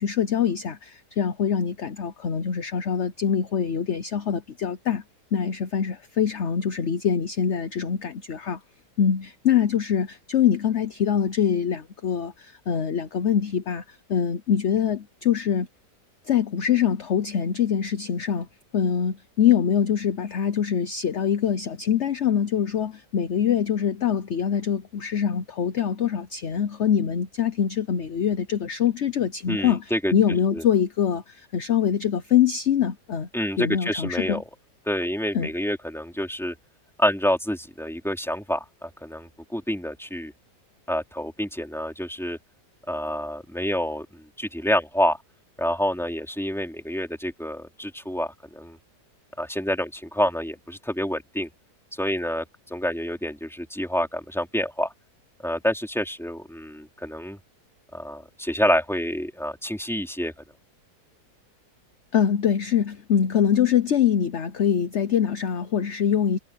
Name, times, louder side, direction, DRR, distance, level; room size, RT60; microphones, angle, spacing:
voice 1, 0.0-5.0 5.3-8.6 9.0-15.7 16.3-18.5 18.7-33.3 33.6-34.4 35.3-35.5 62.1-66.4, left 8 dB, 50° left, 1.1 m, -24 dB
voice 2, 29.5-30.1 30.5-30.6 33.3-34.4 34.9-36.6 37.0-40.3 40.9-42.4 42.9-45.2 45.6-48.8 49.4-51.5 52.0-52.4 52.7-54.9 55.4-57.4 57.9-60.3, equal, ahead, 3.4 m, -27 dB
omnidirectional pair, 1.8 m